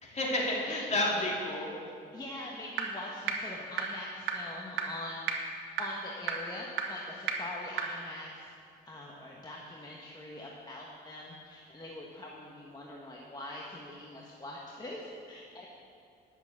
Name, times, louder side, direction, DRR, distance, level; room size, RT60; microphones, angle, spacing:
voice 1, 0.0-1.7, left 1 dB, 35° left, -3 dB, 2.9 m, -30 dB
voice 2, 0.6-1.2 2.1-8.5 8.8-15.7, left 1 dB, 20° left, -3 dB, 1.3 m, -43 dB
sound 1, 2.8-2.9 3.3-3.4 3.8-3.9 4.3-4.4 4.8-4.9 5.3-5.4 5.8-5.9 6.3-6.4 6.8-6.9 7.3-7.4 7.8-7.9, right 9 dB, 85° right, 1.2 m, -30 dB
10.5 x 7.0 x 7.3 m, 2.5 s
cardioid pair, 90°, 20 cm